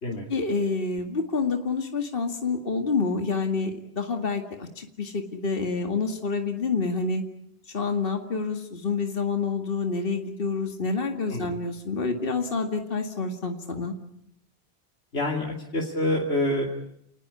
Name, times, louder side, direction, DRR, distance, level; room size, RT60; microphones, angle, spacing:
voice 1, 0.3-7.2 7.7-13.9, left 4 dB, 60° left, 5 dB, 2.3 m, -28 dB
voice 2, 15.1-16.7, left 1 dB, 90° left, -1 dB, 3.2 m, -27 dB
29.5 x 19.0 x 9.7 m, 0.76 s
omnidirectional pair, 1.1 m